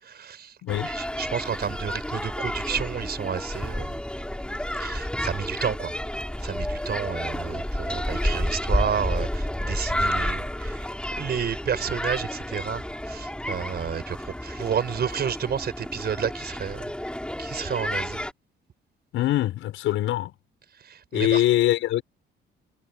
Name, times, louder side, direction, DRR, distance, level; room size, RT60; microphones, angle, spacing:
voice 1, 0.0-0.5 0.8-4.0 4.8-5.9 6.4-16.8 17.4-18.2 20.8-21.4, right 7 dB, 55° right, 5.2 m, -31 dB
voice 2, 0.6-0.9 19.1-20.3 21.1-22.0, left 14 dB, 90° left, 5.8 m, -23 dB
sound 1, 0.7-18.3, left 1 dB, 5° left, 5.7 m, -30 dB
cardioid pair, 90°, 20 cm